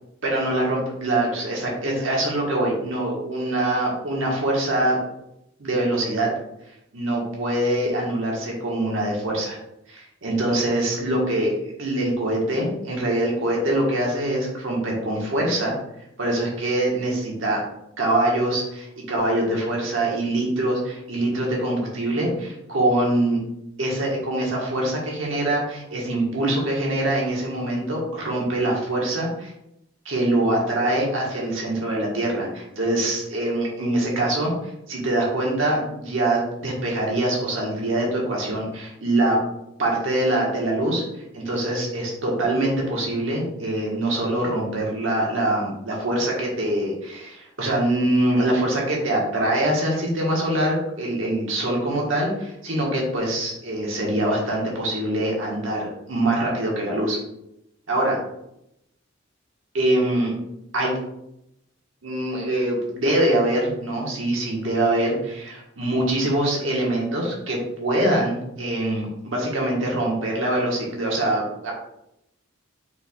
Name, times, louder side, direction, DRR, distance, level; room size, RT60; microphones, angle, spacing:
voice 1, 0.2-5.0 5.6-6.3 6.9-9.6 9.9-15.7 16.2-17.6 18.0-23.4 23.8-29.5 30.0-39.4 39.8-41.0 41.3-57.2 57.9-58.2 59.7-60.3 60.7-61.0 62.0-71.7, right 1 dB, 80° right, -2 dB, 1.3 m, -24 dB
4.4 x 4.3 x 2.3 m, 0.83 s
head